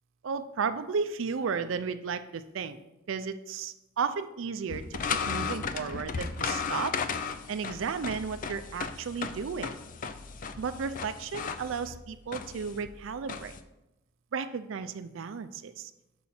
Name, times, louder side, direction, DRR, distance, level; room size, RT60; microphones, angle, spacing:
voice 1, 0.2-2.8 3.1-4.8 5.1-6.9 7.5-9.7 10.6-13.5 14.3-15.9, right 5 dB, 70° right, 10 dB, 0.4 m, -34 dB
sound 1, 4.7-13.6, left 5 dB, 45° left, 0.4 m, -35 dB
6.2 x 4.3 x 5.6 m, 0.94 s
head